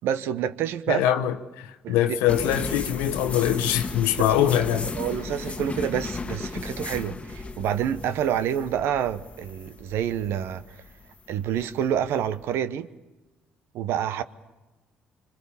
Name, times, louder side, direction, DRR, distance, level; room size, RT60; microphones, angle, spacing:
voice 1, 0.0-1.0 1.8-2.2 4.9-10.8 11.3-12.9 13.7-14.2, right 9 dB, 65° right, 1.0 m, -28 dB
voice 2, 0.9-4.9, left 11 dB, 75° left, 1.0 m, -23 dB
sound 1, 2.3-12.4, left 3 dB, 25° left, 1.5 m, -35 dB
sound 2, 5.2-5.6 6.3-6.8 7.3-7.8, right 1 dB, 45° right, 2.3 m, -49 dB
26.0 x 25.0 x 7.1 m
hypercardioid pair, 50°, 4 cm